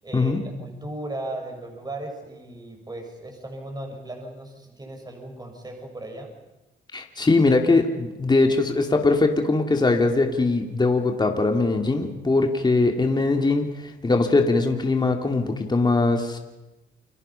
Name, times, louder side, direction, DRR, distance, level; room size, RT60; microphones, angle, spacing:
voice 1, 0.0-6.3, right 2 dB, 20° right, 3 dB, 6.5 m, -36 dB
voice 2, 6.9-16.4, left 3 dB, 20° left, 3 dB, 2.5 m, -21 dB
29.5 x 23.5 x 5.7 m, 1.0 s
cardioid pair, 90°, 20 cm